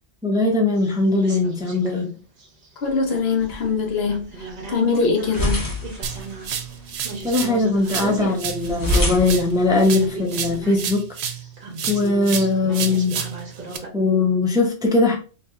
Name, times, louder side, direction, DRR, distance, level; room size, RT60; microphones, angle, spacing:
voice 1, 0.2-2.1 7.2-11.1 11.9-13.2 13.9-15.2, left 2 dB, 5° right, 0.5 m, -20 dB
sound 1, 0.8-2.0 2.4-3.5 4.0-13.9, right 2 dB, 50° right, 1.1 m, -36 dB
voice 2, 2.8-5.7, left 5 dB, 70° left, 1.1 m, -23 dB
sound 2, 2.9-10.9, left 1 dB, 20° left, 1.0 m, -30 dB
sound 3, 6.0-7.6 7.8-11.5 11.8-13.8, right 7 dB, 80° right, 0.9 m, -30 dB
4.1 x 2.7 x 2.4 m
omnidirectional pair, 1.1 m